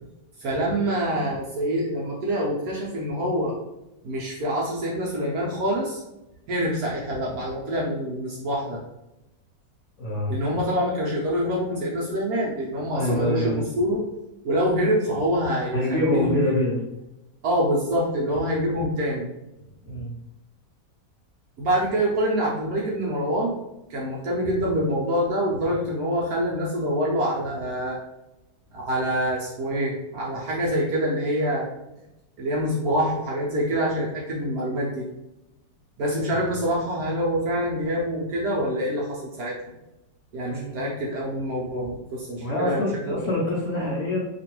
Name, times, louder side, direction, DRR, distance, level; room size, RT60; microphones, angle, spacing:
voice 1, 0.4-3.6 4.0-6.0 6.5-8.8 10.3-14.0 14.4-16.6 17.4-19.3 21.6-23.6 23.9-28.0 28.7-31.7 32.4-35.0 36.0-39.5 40.3-43.2, equal, 70° right, -4 dB, 0.9 m, -25 dB
voice 2, 10.0-10.3 12.9-13.6 15.7-16.8 19.9-20.1 40.5-40.8 42.4-44.3, left 1 dB, 65° left, -6 dB, 0.7 m, -25 dB
2.9 x 2.4 x 2.9 m, 0.93 s
omnidirectional pair, 1.9 m